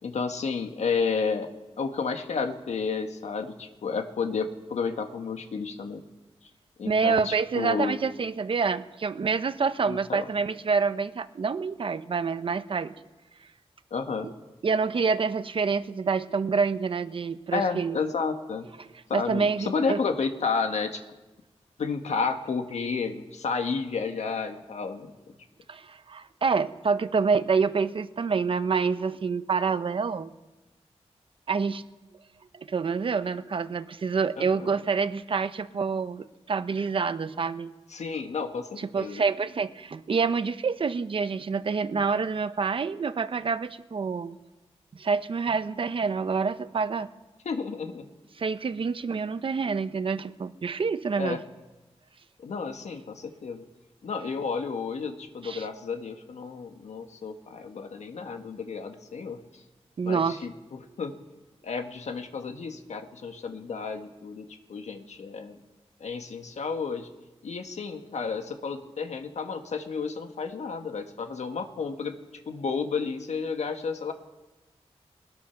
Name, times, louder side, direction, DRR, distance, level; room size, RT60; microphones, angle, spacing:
voice 1, 0.0-1.5 1.8-6.0 6.8-8.0 9.9-10.3 13.9-14.3 17.5-18.7 19.1-21.0 21.8-25.1 34.4-34.7 37.9-39.2 47.4-48.1 51.2-51.4 52.4-53.6 54.0-59.4 60.0-60.5 61.0-61.1 61.6-65.6 66.0-67.1 67.4-72.1 72.5-74.1, left 5 dB, 90° left, 6 dB, 1.6 m, -31 dB
voice 2, 6.8-12.9 14.2-14.3 14.6-18.0 18.8-20.0 25.7-30.3 31.5-31.8 32.5-37.7 38.8-44.4 44.9-47.1 48.4-51.4 55.4-55.7 60.0-60.4, right 5 dB, 50° right, 12 dB, 0.9 m, -27 dB
21.5 x 20.5 x 5.9 m, 1.1 s
wide cardioid pair, 155°, 11 cm